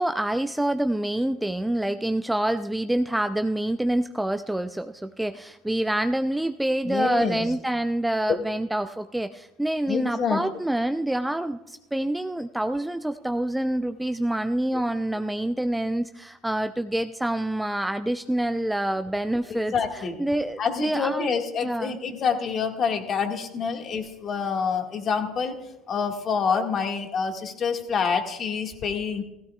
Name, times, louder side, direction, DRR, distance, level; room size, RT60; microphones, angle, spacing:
voice 1, 0.0-21.3 21.6-22.0, right 1 dB, 5° right, 9 dB, 0.5 m, -27 dB
voice 2, 6.8-7.4 8.3-8.4 9.9-10.4 14.7-14.8 19.5-20.2 20.6-25.6 25.9-29.2, left 6 dB, 40° left, 4 dB, 1.9 m, -27 dB
16.0 x 16.0 x 2.4 m, 0.94 s
hypercardioid pair, 75°, 0 cm